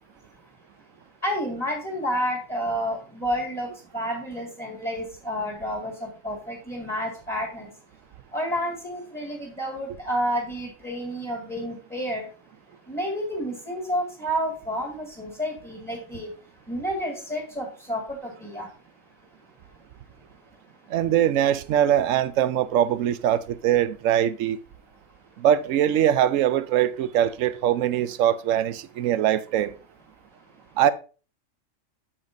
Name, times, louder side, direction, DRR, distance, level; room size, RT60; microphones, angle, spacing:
voice 1, 1.2-3.7 3.9-7.6 8.3-12.3 12.9-16.3 16.7-18.7, equal, 5° left, 1.7 m, -30 dB
voice 2, 20.9-24.6 25.4-29.7 30.8-30.9, right 10 dB, 80° right, 0.9 m, -22 dB
8.6 x 6.7 x 2.6 m
omnidirectional pair, 1.4 m